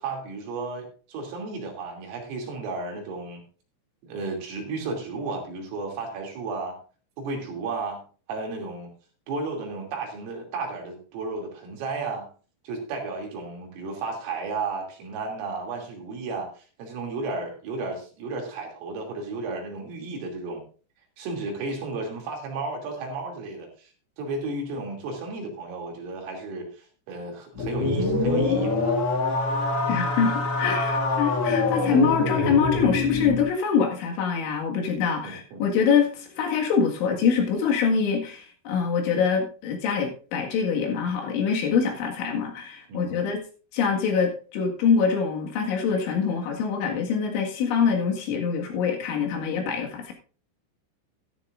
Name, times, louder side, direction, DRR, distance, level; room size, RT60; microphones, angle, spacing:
voice 1, 0.0-3.4 4.0-6.8 7.2-8.0 8.3-8.9 9.3-12.3 12.7-20.6 21.2-23.9 24.2-29.0 35.2-35.6 42.9-43.3, right 3 dB, 75° right, 1 dB, 5.4 m, -33 dB
sound 1, 27.5-33.5, left 3 dB, 45° left, 2.0 m, -25 dB
voice 2, 29.9-43.4 43.7-50.1, left 6 dB, 70° left, 1 dB, 4.1 m, -24 dB
13.5 x 13.5 x 2.5 m, 0.37 s
omnidirectional pair, 5.9 m